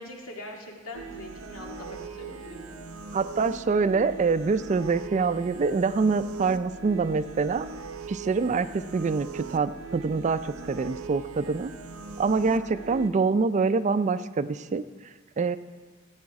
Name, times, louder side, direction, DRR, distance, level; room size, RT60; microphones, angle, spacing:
voice 1, 0.0-2.8, left 1 dB, 90° left, 0 dB, 1.9 m, -42 dB
sound 1, 0.9-13.1, right 5 dB, 85° right, 0.7 m, -40 dB
voice 2, 3.1-7.7 8.1-11.7 12.2-14.8 15.4-15.6, right 4 dB, 35° right, 13 dB, 0.3 m, -25 dB
15.5 x 8.7 x 4.7 m, 1.4 s
head